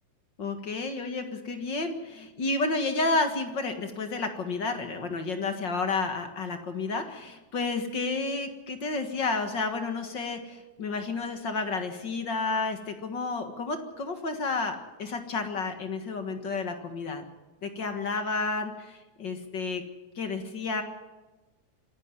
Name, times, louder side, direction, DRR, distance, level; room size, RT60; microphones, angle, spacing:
voice 1, 0.4-17.2 17.6-19.8 20.2-20.8, left 3 dB, 45° left, 6 dB, 2.0 m, -31 dB
26.0 x 11.0 x 9.8 m, 1.1 s
omnidirectional pair, 3.3 m